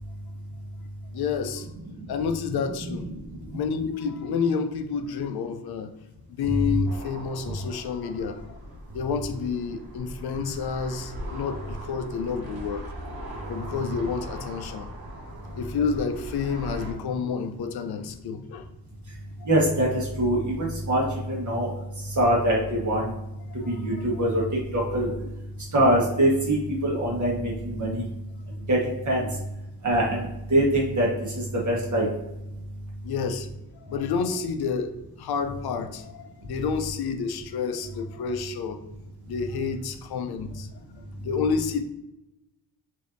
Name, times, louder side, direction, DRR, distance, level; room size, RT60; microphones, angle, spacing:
voice 1, 1.1-1.7 2.1-3.1 3.5-5.9 6.4-8.6 8.9-12.9 13.5-14.9 15.6-18.6 19.4-19.5 23.5-24.2 25.2-25.3 29.2-29.3 33.0-33.5 33.9-38.8 39.3-40.7 41.2-41.8, left 6 dB, 75° left, 0.5 m, -29 dB
sound 1, 6.9-16.9, equal, 70° right, 1.2 m, -40 dB
voice 2, 19.4-21.7 22.0-23.1 23.5-24.4 24.7-25.1 25.7-28.1 28.7-29.3 29.8-32.1, right 1 dB, 50° right, 1.3 m, -24 dB
5.1 x 2.8 x 2.5 m
wide cardioid pair, 145°, 39 cm